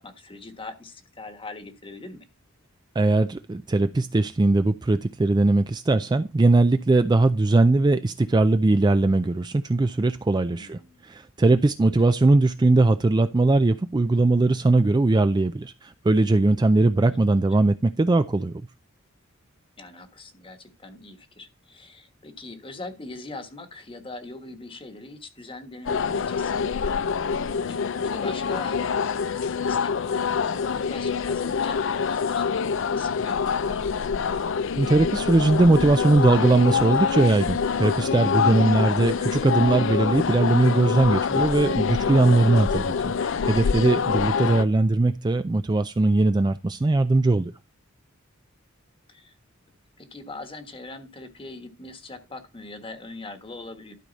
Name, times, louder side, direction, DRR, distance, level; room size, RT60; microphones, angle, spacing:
voice 1, 0.0-2.2 10.5-11.0 12.0-12.1 17.1-17.2 19.8-26.6 27.3-33.8 49.1-49.3 50.0-53.9, left 2 dB, 25° left, 1.3 m, -42 dB
voice 2, 3.0-18.6 34.8-47.5, right 2 dB, 20° right, 0.4 m, -20 dB
sound 1, 25.9-44.7, left 6 dB, 65° left, 0.4 m, -25 dB
12.0 x 4.9 x 4.0 m
head